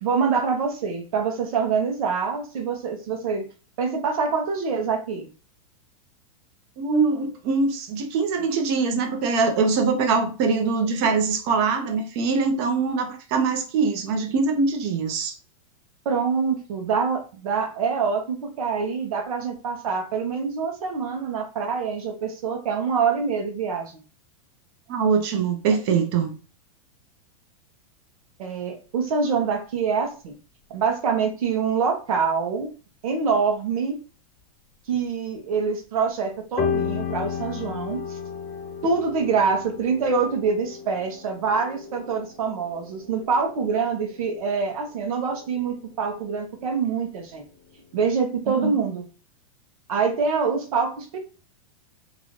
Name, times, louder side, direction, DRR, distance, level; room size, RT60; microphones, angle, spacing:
voice 1, 0.0-3.5 3.8-5.3 16.0-24.0 28.4-30.3 30.7-32.7 33.0-34.0 34.9-38.2 38.8-47.4 47.9-49.0 49.9-51.2, right 5 dB, 75° right, 1.1 m, -25 dB
voice 2, 6.8-15.3 24.9-26.3 48.6-48.7, right 4 dB, 50° right, 0.9 m, -23 dB
sound 1, 36.6-47.0 47.3-48.1, left 7 dB, 40° left, 0.5 m, -34 dB
3.0 x 2.6 x 3.1 m
supercardioid pair, 135°, 18 cm